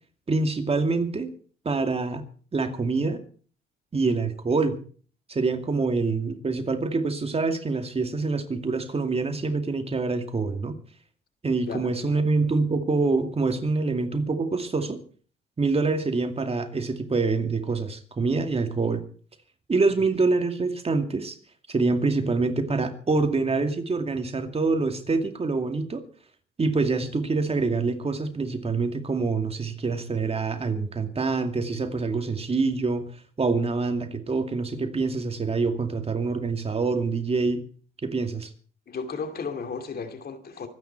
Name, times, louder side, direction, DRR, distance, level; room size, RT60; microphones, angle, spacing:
voice 1, 0.3-1.3 1.6-2.2 2.5-3.2 3.9-4.8 5.3-10.7 11.4-15.0 15.6-19.0 19.7-21.4 21.7-26.0 26.6-33.0 33.4-37.6 38.0-38.5, right 3 dB, 30° right, 7 dB, 2.4 m, -25 dB
voice 2, 11.7-12.2 38.9-40.7, left 5 dB, 50° left, 7 dB, 2.5 m, -34 dB
24.5 x 9.6 x 4.5 m, 0.42 s
cardioid pair, 90°, 20 cm